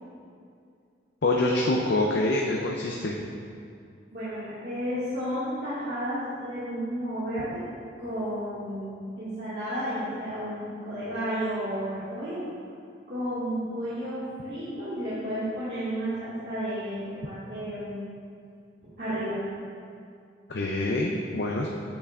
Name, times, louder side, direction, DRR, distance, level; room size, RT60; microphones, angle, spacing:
voice 1, 1.2-3.2 20.5-21.7, left 2 dB, 70° left, -1 dB, 0.6 m, -26 dB
voice 2, 4.1-7.6 8.0-12.4 13.1-18.0 19.0-19.4, equal, 65° right, -13 dB, 1.9 m, -32 dB
8.7 x 8.1 x 2.5 m, 2.4 s
head